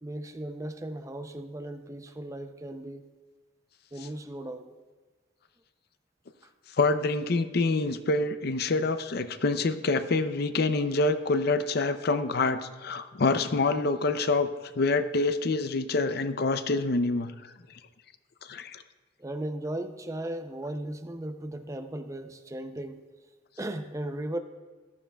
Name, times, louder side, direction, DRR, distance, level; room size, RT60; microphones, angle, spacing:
voice 1, 0.0-3.1 3.9-4.7 19.2-23.0 23.6-24.4, right 1 dB, 15° right, 8 dB, 0.5 m, -36 dB
voice 2, 6.8-14.5 14.8-17.5 18.4-18.8, left 3 dB, 55° left, 11 dB, 0.5 m, -26 dB
14.5 x 12.5 x 2.3 m, 1.4 s
head